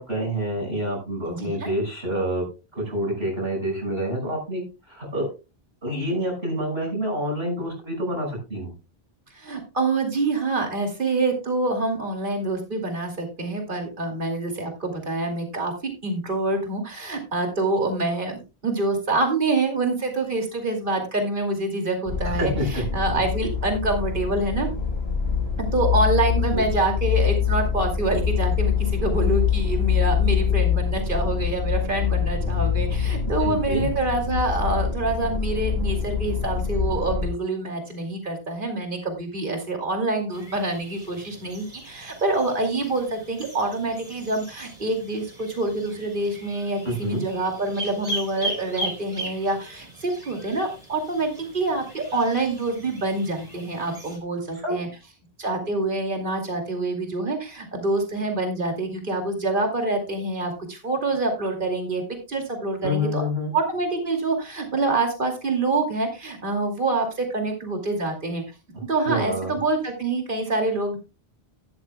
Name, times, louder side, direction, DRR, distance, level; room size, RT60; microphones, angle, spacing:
voice 1, 0.0-2.4 2.7-5.3 5.8-8.7 22.2-22.8 26.5-26.6 33.2-33.9 46.8-47.2 54.5-54.8 62.8-63.5 69.1-69.6, equal, 80° right, -1 dB, 5.8 m, -27 dB
voice 2, 1.3-1.7 9.3-24.7 25.6-54.9 55.4-62.0 62.3-63.2 63.5-68.4 68.9-71.0, right 2 dB, 55° right, 3 dB, 2.7 m, -26 dB
sound 1, 22.1-37.3, left 7 dB, 85° left, 2.6 m, -25 dB
sound 2, 40.3-54.2, right 1 dB, 40° right, 3.6 m, -39 dB
12.5 x 12.0 x 2.2 m, 0.29 s
omnidirectional pair, 1.1 m